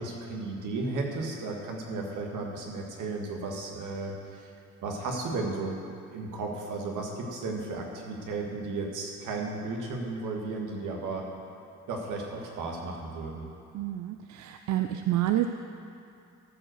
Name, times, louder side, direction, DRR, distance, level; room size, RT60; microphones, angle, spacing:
voice 1, 0.0-4.5 4.8-5.8 6.1-11.3 11.9-13.4, right 3 dB, 85° right, 0 dB, 1.8 m, -34 dB
voice 2, 13.7-15.5, right 14 dB, 70° right, 7 dB, 0.5 m, -28 dB
14.0 x 5.2 x 6.5 m, 2.6 s
cardioid pair, 90°, 30 cm